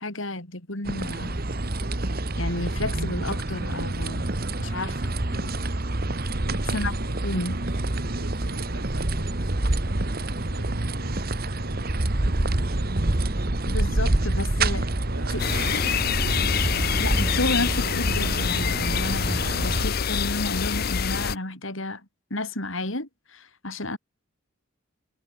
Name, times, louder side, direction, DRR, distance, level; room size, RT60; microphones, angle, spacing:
voice 1, 0.0-1.4 2.4-4.3 4.6-5.5 6.7-7.0 7.2-7.6 13.7-14.9 17.0-22.0 22.3-24.0, left 2 dB, 65° left, 4.3 m, -31 dB
sound 1, 0.8-19.9, right 2 dB, 45° right, 1.5 m, -27 dB
voice 2, 6.3-13.1 14.9-15.9, right 2 dB, 80° right, 6.0 m, -46 dB
sound 2, 15.4-21.4, left 7 dB, 45° left, 0.6 m, -26 dB
head